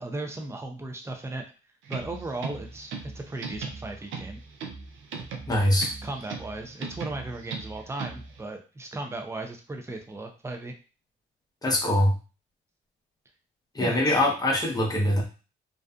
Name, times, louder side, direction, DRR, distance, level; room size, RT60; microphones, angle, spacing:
voice 1, 0.0-1.4 1.9-4.4 6.0-10.7 13.8-14.2, right 2 dB, 15° right, 3 dB, 0.5 m, -36 dB
sound 1, 1.8-8.4, right 5 dB, 75° right, 0.5 m, -39 dB
voice 2, 5.5-5.9 11.6-12.1 13.7-15.2, left 1 dB, 20° left, 0 dB, 0.8 m, -23 dB
2.6 x 2.3 x 2.3 m, 0.34 s
cardioid pair, 90°, 20 cm